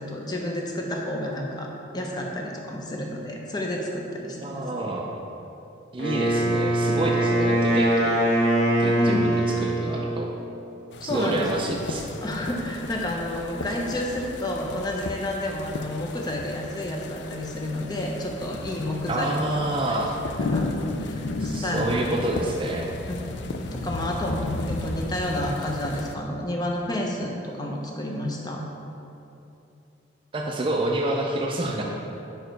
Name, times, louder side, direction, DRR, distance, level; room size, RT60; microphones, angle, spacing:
voice 1, 0.0-4.6 9.0-9.3 11.0-11.5 12.2-19.4 19.9-20.0 20.3-20.7 21.0-22.0 23.0-23.3 23.7-24.4 24.7-28.6, left 1 dB, 20° left, 0 dB, 0.6 m, -30 dB
voice 2, 4.4-5.2 5.9-8.2 8.8-10.3 11.0-12.2 19.1-20.1 21.4-22.9 30.3-31.8, right 1 dB, 30° right, 0 dB, 0.4 m, -28 dB
Wind instrument woodwind instrument, 6.0-10.2, right 1 dB, 40° left, 1.0 m, -22 dB
sound 1, 10.9-26.1, left 2 dB, 70° left, 0.4 m, -34 dB
5.1 x 4.8 x 4.5 m, 2.8 s
head